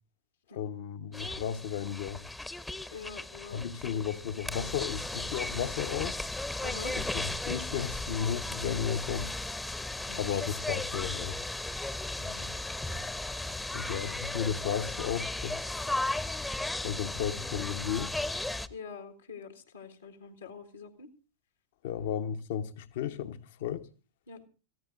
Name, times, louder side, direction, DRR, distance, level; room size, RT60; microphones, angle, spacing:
voice 1, 0.5-2.2 3.5-6.2 7.0-9.3 10.1-11.4 13.7-15.9 16.8-18.2 21.8-23.9, left 8 dB, 55° left, 1.1 m, -34 dB
sound 1, 1.1-18.7, left 2 dB, 5° left, 0.9 m, -36 dB
voice 2, 2.9-4.0 6.6-6.9 10.1-10.4 12.2-12.6 13.9-14.1 18.7-21.1 22.0-22.1 24.3-24.5, left 5 dB, 70° left, 1.7 m, -45 dB
26.5 x 15.0 x 2.6 m
figure-of-eight pair, 90°, 0 cm